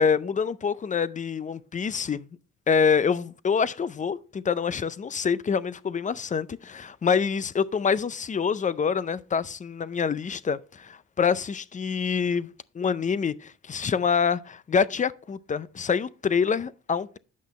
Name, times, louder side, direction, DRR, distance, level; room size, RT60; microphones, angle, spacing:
voice 1, 0.0-2.3 2.7-12.5 12.8-17.2, left 6 dB, 25° left, 0.5 m, -26 dB
8.5 x 6.0 x 4.2 m
cardioid pair, 90°, 30 cm